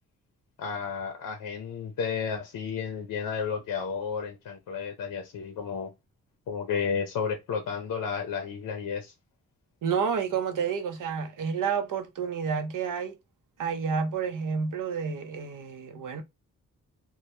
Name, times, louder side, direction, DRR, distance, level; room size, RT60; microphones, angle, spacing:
voice 1, 0.6-5.9 6.5-9.1, left 6 dB, 65° left, 0.6 m, -32 dB
voice 2, 9.8-13.1 13.6-16.2, right 6 dB, 65° right, 0.6 m, -30 dB
2.1 x 2.1 x 2.9 m
supercardioid pair, 50°, 34 cm